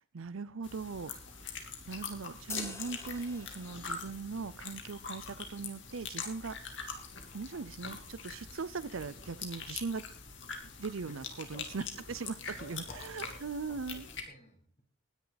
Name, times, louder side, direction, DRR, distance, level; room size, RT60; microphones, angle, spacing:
voice 1, 0.0-7.0 7.3-10.1 10.8-14.1, right 4 dB, 80° right, 17 dB, 0.6 m, -40 dB
sound 1, 0.6-14.2, left 5 dB, 60° left, 2.8 m, -44 dB
sound 2, 2.5-4.1, left 3 dB, 15° left, 1.7 m, -46 dB
voice 2, 12.5-13.4 13.7-14.8, equal, 35° left, 2 dB, 4.4 m, -54 dB
19.0 x 10.5 x 4.1 m, 0.43 s
head